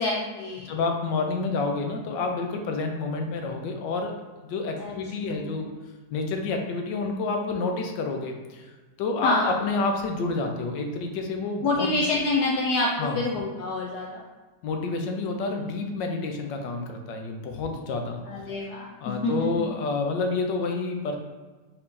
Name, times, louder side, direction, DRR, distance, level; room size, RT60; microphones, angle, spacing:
voice 1, 0.0-0.7 4.8-4.9 5.3-5.6 9.2-9.5 11.6-14.2 15.4-15.5 18.3-19.6, left 2 dB, 75° left, -2 dB, 1.0 m, -27 dB
voice 2, 0.7-4.1 4.4-5.7 6.1-8.7 9.0-12.0 13.0-13.2 14.6-18.2 19.0-21.2, left 3 dB, 90° left, 3 dB, 1.3 m, -29 dB
4.5 x 2.6 x 3.6 m, 1.3 s
omnidirectional pair, 1.9 m